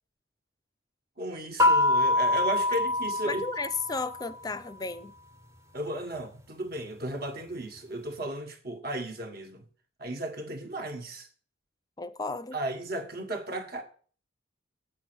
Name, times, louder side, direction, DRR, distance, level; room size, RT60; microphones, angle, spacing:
voice 1, 1.2-3.4 5.7-9.6 10.0-11.3 12.5-13.8, right 1 dB, 50° right, 1.7 m, -35 dB
sound 1, 1.6-4.3, left 2 dB, 15° right, 0.8 m, -25 dB
voice 2, 3.2-5.1 12.0-12.6, left 3 dB, 20° left, 0.6 m, -34 dB
8.2 x 7.8 x 6.3 m
head